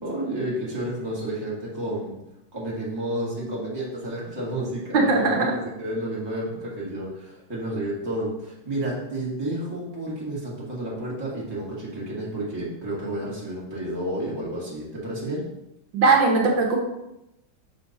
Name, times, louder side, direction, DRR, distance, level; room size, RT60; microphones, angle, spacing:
voice 1, 0.0-2.1 2.5-5.3 5.8-15.4, right 1 dB, 10° right, -7 dB, 1.9 m, -31 dB
voice 2, 4.9-5.5 15.9-16.8, right 3 dB, 65° right, 0 dB, 1.8 m, -19 dB
6.2 x 4.3 x 5.4 m, 0.89 s
omnidirectional pair, 2.2 m